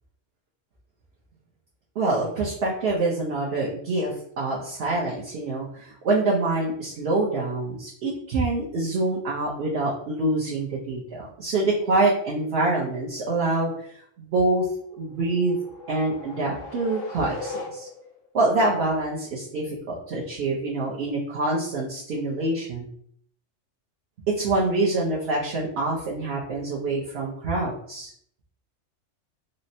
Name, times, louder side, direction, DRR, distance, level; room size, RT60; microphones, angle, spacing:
voice 1, 2.0-4.1 4.4-13.7 14.2-14.7 15.0-15.6 15.9-17.9 18.3-22.8 24.4-28.1, right 2 dB, 60° right, -6 dB, 0.9 m, -25 dB
sound 1, 15.0-18.3, left 3 dB, 90° left, 1.0 m, -39 dB
4.1 x 2.0 x 2.7 m, 0.63 s
omnidirectional pair, 1.3 m